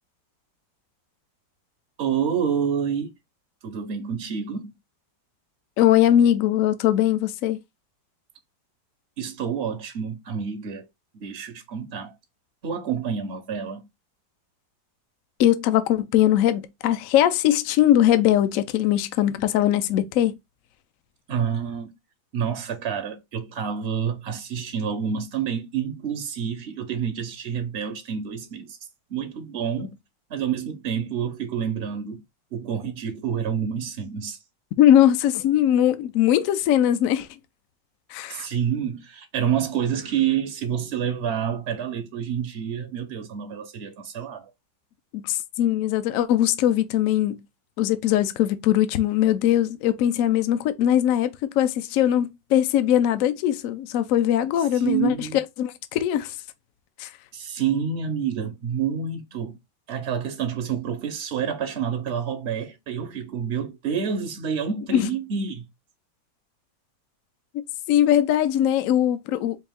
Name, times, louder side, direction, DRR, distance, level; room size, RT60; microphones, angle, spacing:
voice 1, 2.0-3.1 3.6-4.7 9.2-10.9 11.1-12.1 12.6-13.8 21.3-21.9 22.3-28.8 29.1-29.9 30.3-32.2 32.5-34.4 38.3-44.5 54.7-55.4 57.3-59.6 59.9-65.7, right 7 dB, 75° right, 0.6 m, -28 dB
voice 2, 5.8-7.6 15.4-20.3 34.8-37.3 38.1-38.5 45.1-47.4 47.8-56.3 57.0-57.1 64.9-65.1 67.5-69.6, left 11 dB, 85° left, 0.7 m, -21 dB
4.4 x 2.6 x 3.4 m
omnidirectional pair, 2.1 m